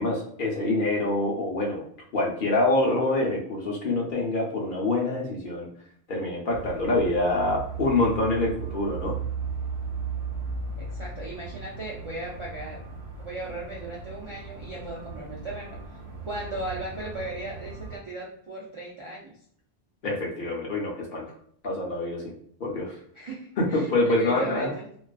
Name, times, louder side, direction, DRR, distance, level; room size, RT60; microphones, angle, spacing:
voice 1, 0.0-1.8 2.1-5.7 6.1-9.2 20.0-21.3 21.6-22.3 22.6-22.9 23.6-24.7, left 2 dB, 60° left, -2 dB, 0.7 m, -26 dB
sound 1, 6.5-18.0, right 5 dB, 80° right, 1.1 m, -36 dB
voice 2, 10.8-12.8 13.2-15.8 16.3-19.3 23.2-24.9, right 2 dB, 50° right, -5 dB, 0.3 m, -37 dB
2.4 x 2.3 x 2.3 m, 0.62 s
omnidirectional pair, 1.1 m